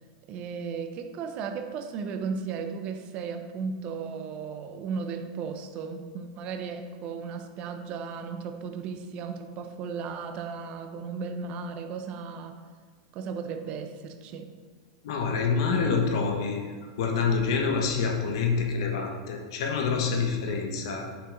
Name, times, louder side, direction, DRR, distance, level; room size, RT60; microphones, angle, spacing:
voice 1, 0.3-12.6 13.1-14.5, right 5 dB, 45° right, 7 dB, 0.6 m, -35 dB
voice 2, 15.0-21.0, left 5 dB, 70° left, 2 dB, 1.2 m, -27 dB
8.2 x 5.9 x 2.6 m, 1.5 s
hypercardioid pair, 110°, 3 cm